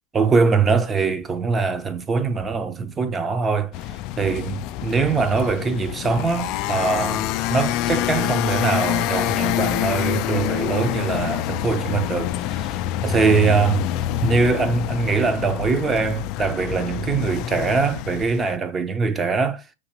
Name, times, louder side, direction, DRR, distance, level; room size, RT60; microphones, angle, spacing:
voice 1, 0.1-13.9 14.2-19.6, right 4 dB, 20° right, 0.6 m, -22 dB
sound 1, 3.7-18.6, left 13 dB, 45° left, 0.3 m, -26 dB
5.9 x 2.8 x 2.9 m
hypercardioid pair, 115°, 0 cm